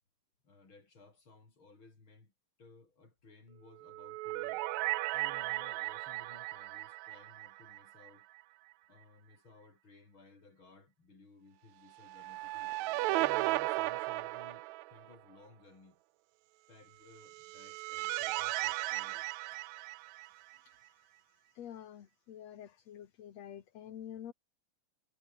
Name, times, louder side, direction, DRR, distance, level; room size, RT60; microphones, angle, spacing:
voice 1, 0.4-2.3 2.6-4.6 5.1-8.3 8.9-12.7 13.2-16.0 16.7-19.3, left 3 dB, 35° left, 6.1 m, -59 dB
sound 1, 3.8-8.1 8.4-8.5 12.0-15.1 17.2-20.6, right 20 dB, 85° right, 1.6 m, -36 dB
voice 2, 19.6-24.3, left 10 dB, 55° left, 2.7 m, -50 dB
omnidirectional pair, 3.8 m